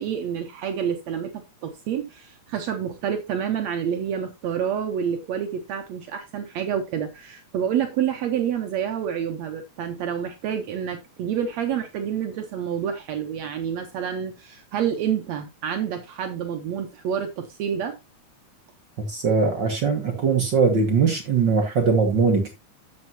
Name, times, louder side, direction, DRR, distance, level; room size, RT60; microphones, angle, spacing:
voice 1, 0.0-18.0, right 8 dB, 70° right, 2.1 m, -28 dB
voice 2, 19.0-22.5, right 5 dB, 50° right, 1.6 m, -21 dB
11.0 x 7.4 x 2.8 m
omnidirectional pair, 3.4 m